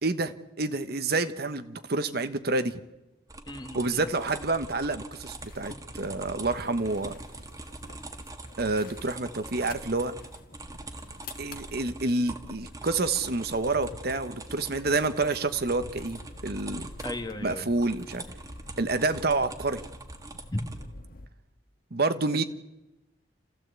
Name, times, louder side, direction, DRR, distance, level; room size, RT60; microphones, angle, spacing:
voice 1, 0.0-2.8 3.7-7.1 8.6-10.1 11.4-16.9 17.4-18.2 18.8-19.8 21.9-22.4, right 3 dB, 60° right, 10 dB, 1.2 m, -28 dB
sound 1, 3.3-20.8, right 2 dB, 20° right, 1.7 m, -43 dB
voice 2, 3.5-4.1 17.0-17.7 20.5-20.6, left 1 dB, 25° left, 7 dB, 1.8 m, -35 dB
sound 2, 5.1-21.3, left 2 dB, 55° left, 1.4 m, -49 dB
29.0 x 15.0 x 8.3 m, 1.0 s
head